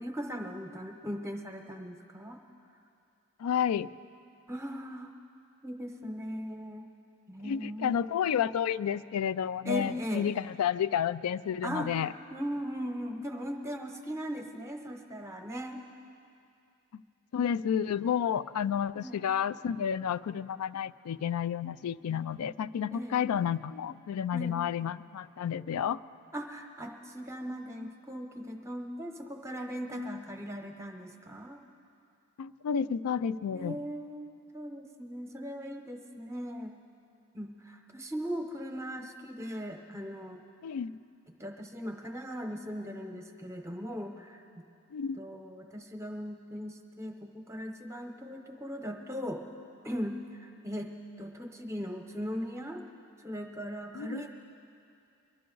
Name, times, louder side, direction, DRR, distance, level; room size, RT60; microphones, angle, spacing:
voice 1, 0.0-2.4 4.5-5.1 5.6-6.9 7.3-8.1 9.6-10.4 11.6-11.9 12.3-15.8 18.9-19.2 22.9-23.2 24.3-24.6 26.3-31.6 33.5-34.3 34.5-36.8 37.3-40.4 41.4-44.6 45.2-49.4 49.8-50.9 51.2-52.8 53.2-54.3, equal, 15° right, 3 dB, 0.8 m, -39 dB
voice 2, 3.4-3.9 7.4-12.1 17.3-26.0 32.4-33.8 40.6-40.9 44.9-45.2 54.0-54.3, left 8 dB, 85° left, 17 dB, 0.3 m, -31 dB
23.0 x 11.5 x 3.9 m, 2.5 s
head